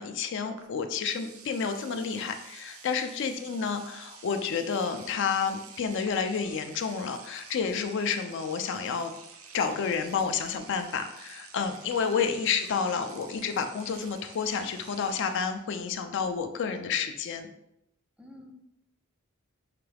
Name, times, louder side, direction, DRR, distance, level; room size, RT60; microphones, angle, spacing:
voice 1, 0.0-9.1 9.5-17.5, left 6 dB, 60° left, 7 dB, 0.4 m, -30 dB
Engine / Domestic sounds home sounds, 0.6-0.7 1.0-15.6, right 5 dB, 75° right, 0.5 m, -49 dB
voice 2, 3.1-3.5 18.2-18.5, left 1 dB, 5° right, 2 dB, 0.4 m, -50 dB
5.8 x 2.3 x 3.3 m, 0.84 s
head